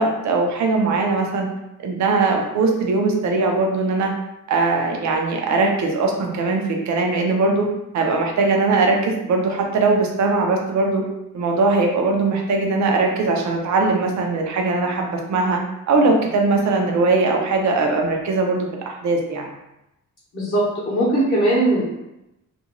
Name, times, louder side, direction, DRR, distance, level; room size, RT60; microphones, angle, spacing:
voice 1, 0.0-1.5 1.8-4.1 4.5-7.7 7.9-11.1 11.3-15.6 15.9-19.5, right 3 dB, 60° right, 2 dB, 0.6 m, -20 dB
voice 2, 20.3-21.9, right 1 dB, 40° left, -8 dB, 0.8 m, -19 dB
2.5 x 2.2 x 2.9 m, 0.90 s
cardioid pair, 130°, 32 cm